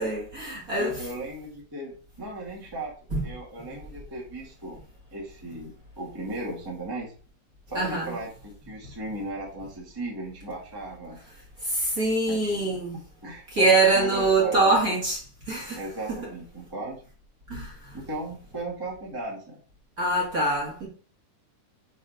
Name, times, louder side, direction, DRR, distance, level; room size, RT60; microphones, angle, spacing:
voice 1, 0.0-1.1 3.1-3.2 7.7-8.1 11.7-12.9 13.5-15.2 15.5-15.8 16.1-16.3 17.5-17.7 20.0-20.9, right 2 dB, 35° right, 1.6 m, -24 dB
voice 2, 0.8-2.9 3.2-4.8 5.1-7.1 7.7-11.2 12.3-12.6 13.2-14.7 15.7-17.0 17.9-19.6, right 2 dB, 15° right, 0.9 m, -36 dB
5.5 x 5.3 x 5.0 m
omnidirectional pair, 4.2 m